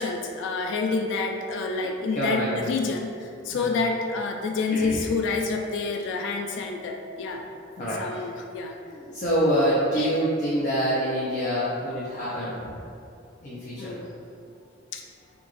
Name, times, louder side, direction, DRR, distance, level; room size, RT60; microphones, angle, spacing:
voice 1, 0.0-7.5 8.0-8.7 10.0-10.1 13.8-14.1 14.9-15.0, left 4 dB, 65° left, 3 dB, 0.3 m, -28 dB
voice 2, 1.8-2.6 3.5-3.7 4.7-5.0 7.8-8.3 8.8-12.7 13.4-14.0, equal, 40° left, -8 dB, 0.7 m, -26 dB
5.7 x 2.5 x 3.2 m, 2.5 s
head